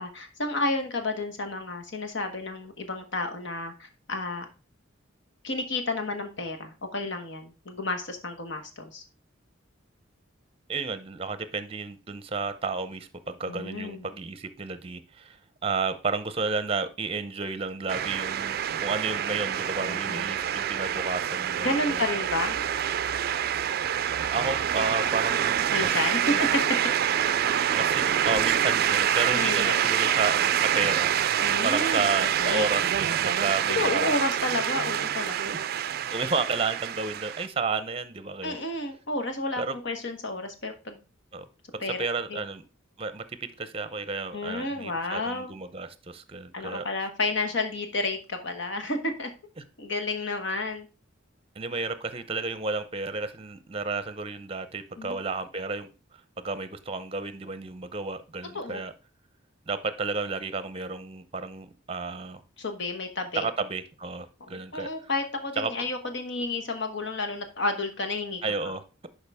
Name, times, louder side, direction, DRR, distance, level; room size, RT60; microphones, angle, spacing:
voice 1, 0.0-4.4 5.4-9.0 13.5-14.1 19.8-20.3 21.6-22.6 25.7-26.5 29.3-29.8 31.4-32.7 33.7-35.6 38.4-41.0 41.8-42.0 42.3-42.4 44.3-45.5 46.5-49.3 49.8-50.9 55.0-55.2 58.5-58.8 62.6-63.5 64.5-68.4, left 2 dB, 65° left, 1.3 m, -31 dB
voice 2, 10.7-15.4 15.6-22.0 24.3-26.0 26.3-26.4 27.7-34.1 36.1-38.6 39.6-39.7 41.3-41.4 42.0-42.6 43.0-46.9 51.6-55.9 56.4-58.9 59.7-62.4 63.3-64.9 65.6-65.9 68.4-68.8, right 4 dB, 30° right, 0.7 m, -32 dB
sound 1, 17.9-37.5, right 9 dB, 50° right, 0.4 m, -26 dB
11.0 x 4.9 x 3.5 m
head